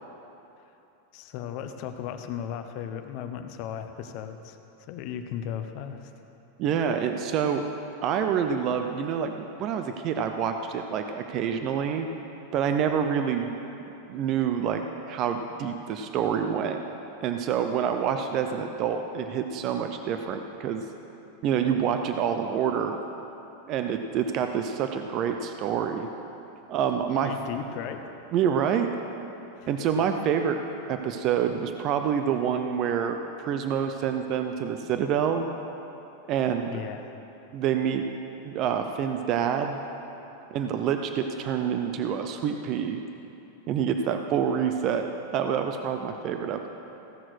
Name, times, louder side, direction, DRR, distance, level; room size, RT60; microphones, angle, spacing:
voice 1, 1.1-4.6 4.9-6.1 27.2-28.3 29.6-30.0 36.7-37.2, left 9 dB, 40° left, 7 dB, 0.7 m, -36 dB
voice 2, 6.6-7.6 8.0-12.1 12.5-13.5 14.1-16.8 17.2-20.8 21.4-23.0 23.7-26.1 26.7-27.3 28.3-28.9 29.7-30.6 30.9-35.4 36.3-36.7 37.5-38.0 38.4-39.8 40.5-43.0 43.7-46.7, right 8 dB, 30° right, 6 dB, 0.5 m, -27 dB
15.5 x 6.3 x 6.2 m, 2.9 s
supercardioid pair, 170°, 0 cm